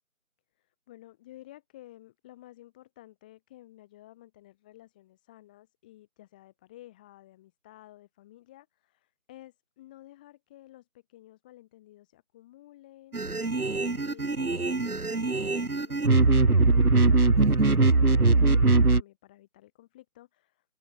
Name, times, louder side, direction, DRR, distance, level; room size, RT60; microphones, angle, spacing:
voice 1, 0.6-17.2 17.5-20.6, left 15 dB, 5° left, 6.1 m, -53 dB
sound 1, 13.1-19.0, right 3 dB, 85° right, 1.6 m, -22 dB
figure-of-eight pair, 170°, 43 cm